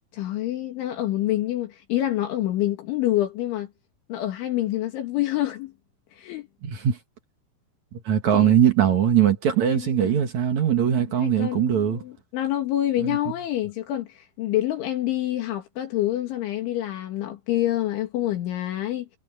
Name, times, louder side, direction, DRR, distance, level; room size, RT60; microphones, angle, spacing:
voice 1, 0.1-3.7 4.1-5.7 6.1-6.5 8.3-8.6 9.7-10.2 11.2-19.1, left 14 dB, 70° left, 4.0 m, -27 dB
voice 2, 6.6-7.0 7.9-12.0 13.0-13.2, right 9 dB, 60° right, 2.0 m, -21 dB
omnidirectional pair, 6.0 m